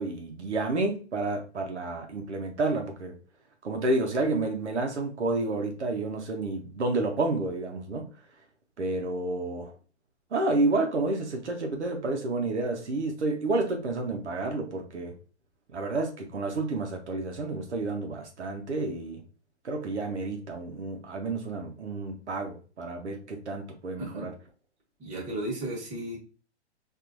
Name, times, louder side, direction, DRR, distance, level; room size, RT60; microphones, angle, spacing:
voice 1, 0.0-3.1 3.6-8.1 8.8-9.7 10.3-15.1 15.7-19.2 19.6-24.3, right 2 dB, 80° right, 0.9 m, -30 dB
voice 2, 25.0-26.2, right 1 dB, 20° right, 1.4 m, -34 dB
4.4 x 2.6 x 2.5 m
figure-of-eight pair, 120°, 34 cm